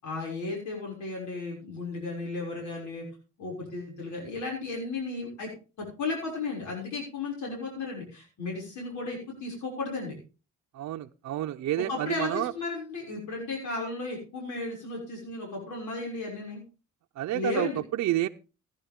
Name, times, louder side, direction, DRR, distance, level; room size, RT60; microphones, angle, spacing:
voice 1, 0.0-3.0 3.4-5.5 5.8-10.2 11.9-16.6 17.3-17.8, left 3 dB, 75° left, -1 dB, 6.2 m, -34 dB
voice 2, 10.7-12.5 17.2-18.3, right 14 dB, 65° right, 5 dB, 0.7 m, -29 dB
16.0 x 10.5 x 3.6 m, 0.33 s
cardioid pair, 90°, 30 cm